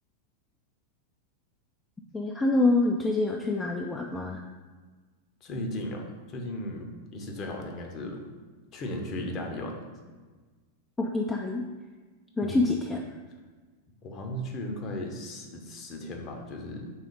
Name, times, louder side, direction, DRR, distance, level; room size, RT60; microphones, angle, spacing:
voice 1, 2.1-4.4 11.0-11.6 12.4-13.0, left 2 dB, 15° left, 1 dB, 0.4 m, -26 dB
voice 2, 5.4-8.3 8.7-9.8 12.4-12.7 14.0-16.9, left 1 dB, 35° left, 2 dB, 0.9 m, -36 dB
4.8 x 3.8 x 5.2 m, 1.4 s
figure-of-eight pair, 90°, 0 cm